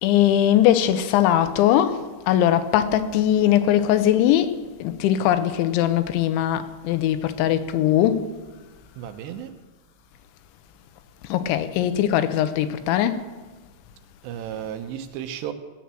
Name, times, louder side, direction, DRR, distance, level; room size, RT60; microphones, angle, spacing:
voice 1, 0.0-1.9 2.3-4.5 4.8-8.2 11.3-13.2, left 11 dB, 90° left, 3.2 m, -20 dB
voice 2, 9.0-9.6 14.2-15.5, right 10 dB, 80° right, 2.9 m, -33 dB
17.5 x 7.1 x 7.6 m
omnidirectional pair, 5.2 m